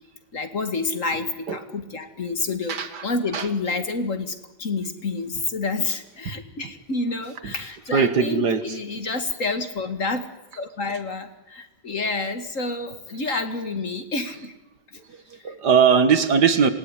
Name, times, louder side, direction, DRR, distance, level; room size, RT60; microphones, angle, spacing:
voice 1, 0.3-2.8 3.0-10.2 10.6-14.5 14.9-15.0 15.3-15.6, left 3 dB, 45° left, 8 dB, 2.2 m, -29 dB
voice 2, 2.7-3.0 3.3-3.5 6.3-6.4 7.4-7.5 7.9-8.6 15.4-16.7, right 6 dB, 65° right, 11 dB, 2.1 m, -19 dB
26.5 x 19.5 x 9.8 m, 1.0 s
omnidirectional pair, 2.0 m